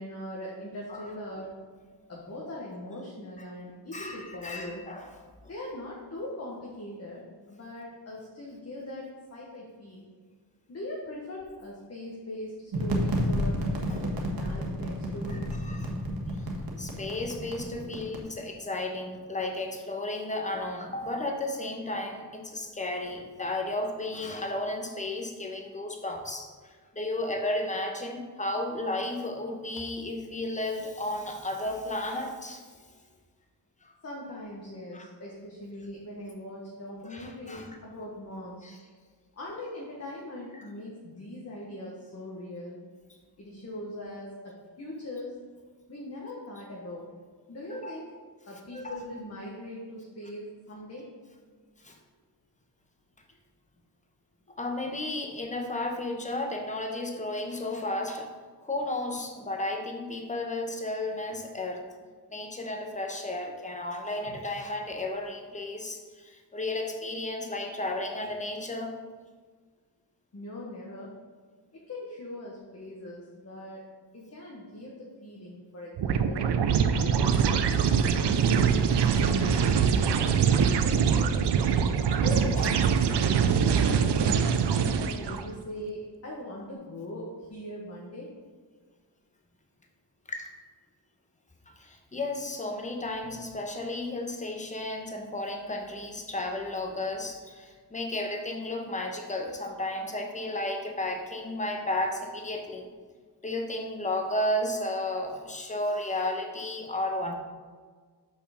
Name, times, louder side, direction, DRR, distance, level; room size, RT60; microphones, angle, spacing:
voice 1, 0.0-1.5 2.1-4.8 5.4-10.1 10.7-15.4 34.0-38.7 39.3-42.8 43.4-45.4 45.9-47.1 47.5-48.0 48.5-51.1 70.3-71.1 71.7-73.8 74.1-76.6 76.9-81.5 82.0-82.9 83.1-84.4 85.0-88.3, left 1 dB, 35° left, -3 dB, 1.3 m, -41 dB
voice 2, 3.9-5.1 13.9-14.1 15.3-16.0 16.8-32.6 33.8-33.9 34.9-35.1 37.1-37.8 38.6-38.8 47.7-47.9 48.7-49.0 51.8-52.0 54.5-58.3 58.6-61.8 62.3-68.9 90.3-90.5 91.7-102.9 103.4-107.3, left 1 dB, 15° left, 3 dB, 1.0 m, -33 dB
sound 1, 12.7-18.2, equal, 55° right, 1.4 m, -31 dB
sound 2, 76.0-85.4, right 7 dB, 75° right, 0.6 m, -24 dB
6.6 x 5.5 x 5.1 m, 1.5 s
wide cardioid pair, 110°, 41 cm